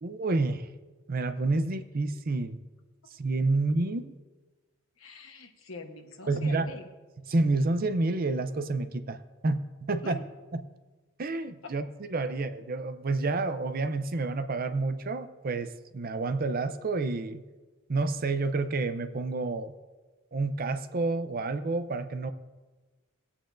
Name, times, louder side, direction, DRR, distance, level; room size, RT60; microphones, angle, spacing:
voice 1, 0.0-0.7 1.1-2.6 3.1-4.1 6.3-6.7 7.3-10.2 10.5-10.6 11.2-11.8 12.1-17.4 17.9-19.8 20.3-22.3, right 3 dB, 45° right, 10 dB, 0.5 m, -29 dB
voice 2, 5.0-6.9 10.0-10.2, left 3 dB, 75° left, 5 dB, 1.1 m, -44 dB
19.0 x 8.6 x 2.6 m, 1.3 s
head